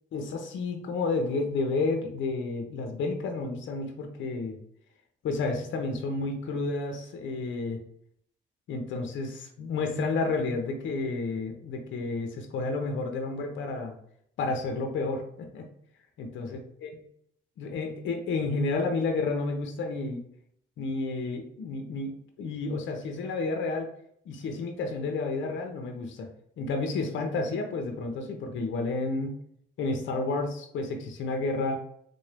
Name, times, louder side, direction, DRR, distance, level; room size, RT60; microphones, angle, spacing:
voice 1, 0.1-4.6 5.2-7.8 8.7-14.0 14.4-15.7 16.2-16.9 17.6-20.2 20.8-23.9 24.3-26.3 26.6-29.3 29.8-31.8, left 3 dB, 75° left, 4 dB, 0.7 m, -31 dB
3.7 x 2.6 x 3.3 m, 0.69 s
cardioid pair, 90°, 20 cm